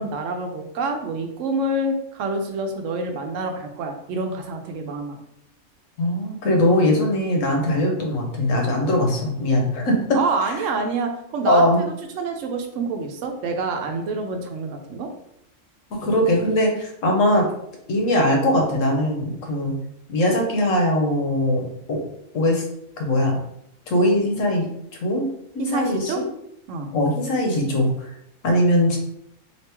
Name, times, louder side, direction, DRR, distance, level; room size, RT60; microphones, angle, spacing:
voice 1, 0.0-5.2 10.1-11.8 12.1-15.1 25.6-26.2 26.7-26.9, right 3 dB, 80° right, 5 dB, 1.0 m, -27 dB
voice 2, 6.0-10.2 11.5-11.8 15.9-17.5 17.9-19.7 20.1-22.0 22.3-22.6 23.0-23.4 23.9-24.7 25.0-25.3 25.5-26.3 26.9-28.1 28.4-29.0, left 1 dB, 85° left, 1 dB, 1.2 m, -21 dB
2.9 x 2.9 x 3.3 m, 0.77 s
omnidirectional pair, 1.3 m